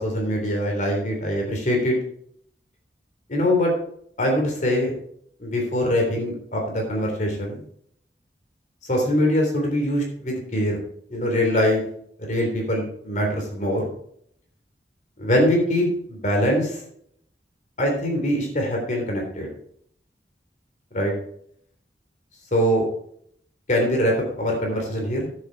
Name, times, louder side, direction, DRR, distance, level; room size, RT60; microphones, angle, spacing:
voice 1, 0.0-2.0 3.3-3.7 4.2-4.9 5.4-7.6 8.8-10.8 11.1-11.8 12.3-13.9 15.2-16.8 17.8-19.5 20.9-21.1 22.5-22.9 23.7-25.3, equal, 45° left, 1 dB, 3.5 m, -23 dB
10.5 x 8.1 x 4.7 m, 0.66 s
head